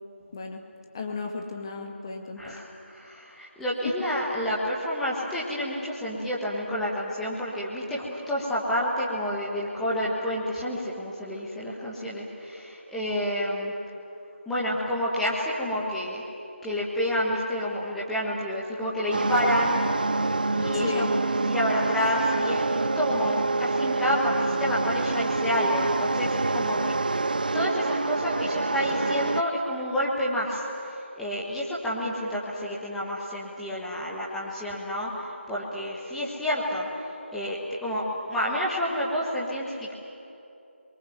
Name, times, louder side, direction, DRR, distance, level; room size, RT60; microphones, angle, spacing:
voice 1, 0.3-0.7 0.9-2.6 3.8-3.9 20.8-21.1, left 4 dB, 20° left, 2 dB, 1.9 m, -33 dB
voice 2, 2.4-13.7 14.4-16.2 16.6-19.8 20.5-21.2 21.5-27.2 27.5-36.9 37.3-39.9, equal, ahead, -7 dB, 1.5 m, -29 dB
sound 1, 19.1-29.4, right 3 dB, 45° right, 0.5 m, -27 dB
30.0 x 22.5 x 7.9 m, 2.7 s
figure-of-eight pair, 165°, 7 cm